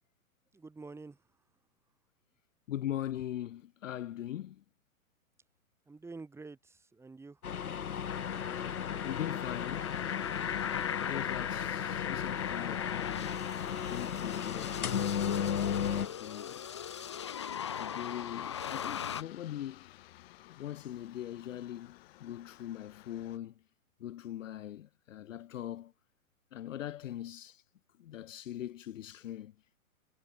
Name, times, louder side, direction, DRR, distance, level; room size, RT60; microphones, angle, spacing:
voice 1, 0.5-1.4 5.9-7.4, right 3 dB, 5° right, 6.1 m, -48 dB
voice 2, 2.7-4.6 9.0-10.0 10.9-13.4 13.9-15.3 15.9-16.6 17.7-19.9 20.5-23.5 24.0-25.9 26.5-27.6 28.0-29.5, left 12 dB, 60° left, 0.9 m, -41 dB
sound 1, 7.4-16.1, left 8 dB, 85° left, 1.9 m, -35 dB
sound 2, 8.1-19.2, left 8 dB, 20° left, 0.4 m, -39 dB
Aircraft, 15.8-23.4, left 16 dB, 45° left, 4.3 m, -56 dB
hypercardioid pair, 150°, 42 cm